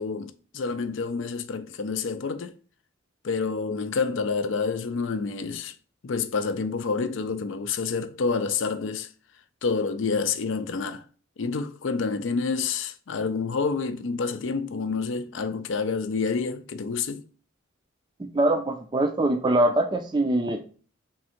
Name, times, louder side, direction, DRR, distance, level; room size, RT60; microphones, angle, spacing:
voice 1, 0.0-2.5 3.2-5.7 6.0-9.1 9.6-11.0 11.4-17.2, left 4 dB, 65° left, 0.4 m, -28 dB
voice 2, 18.2-20.6, right 1 dB, 20° right, 0.4 m, -23 dB
3.6 x 2.5 x 4.3 m
head